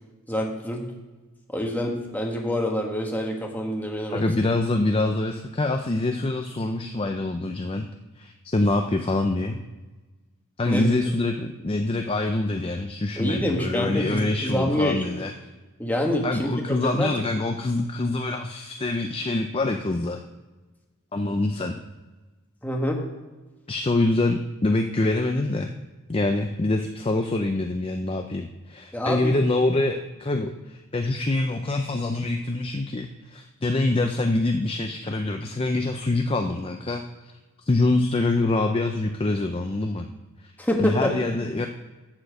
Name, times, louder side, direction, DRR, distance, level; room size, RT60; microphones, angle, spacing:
voice 1, 0.3-0.8 1.5-4.2 10.7-10.9 13.2-15.0 15.8-17.1 22.6-23.1 28.9-29.3 40.6-41.2, equal, 10° left, 0 dB, 1.5 m, -26 dB
voice 2, 4.1-7.9 8.2-9.6 10.6-15.3 16.2-20.2 21.1-21.8 23.7-25.7 26.1-37.0 37.7-40.1 40.8-41.7, left 2 dB, 25° left, 5 dB, 0.5 m, -25 dB
11.5 x 4.5 x 7.6 m, 1.2 s
head